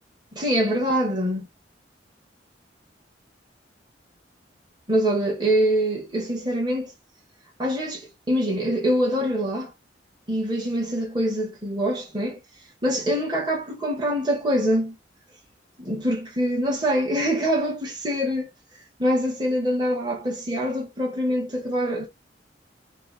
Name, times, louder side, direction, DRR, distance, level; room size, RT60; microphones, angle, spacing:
voice 1, 0.3-1.5 4.9-6.9 7.6-9.7 10.3-12.4 12.8-15.0 15.8-18.5 19.0-22.1, equal, 25° right, 1.0 m, -24 dB
3.6 x 2.0 x 3.7 m
head